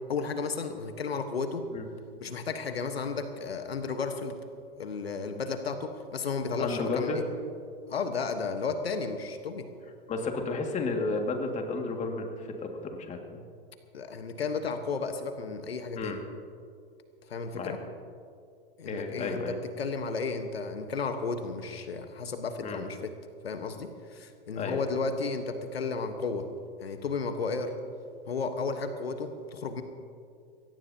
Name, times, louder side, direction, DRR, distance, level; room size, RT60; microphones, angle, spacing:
voice 1, 0.1-1.7 2.2-4.4 4.8-7.2 7.9-9.7 13.9-16.2 17.3-17.8 18.8-23.1 23.4-26.5 26.8-27.7 28.3-29.8, left 4 dB, 90° left, 7 dB, 1.3 m, -33 dB
voice 2, 6.6-7.2 10.1-13.4 16.0-16.2 17.5-17.7 18.9-19.6 22.6-22.8 24.6-24.8, left 3 dB, 25° left, 3 dB, 2.1 m, -32 dB
22.0 x 18.0 x 2.8 m, 2.3 s
hypercardioid pair, 115°, 30 cm